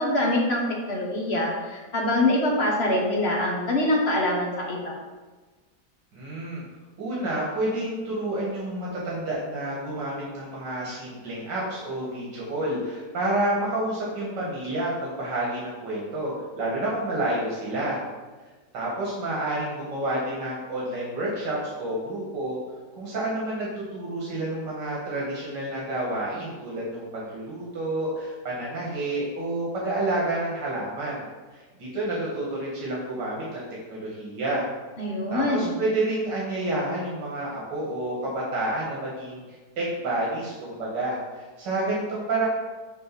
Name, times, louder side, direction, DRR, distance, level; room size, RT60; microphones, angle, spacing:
voice 1, 0.0-5.0 35.0-35.7, left 1 dB, 40° left, -1 dB, 1.3 m, -24 dB
voice 2, 6.1-6.6 7.0-18.0 18.7-22.6 23.0-31.3 31.5-34.7 35.3-39.4 39.8-42.5, right 1 dB, 85° right, -5 dB, 2.2 m, -29 dB
6.4 x 3.8 x 6.1 m, 1.3 s
omnidirectional pair, 1.8 m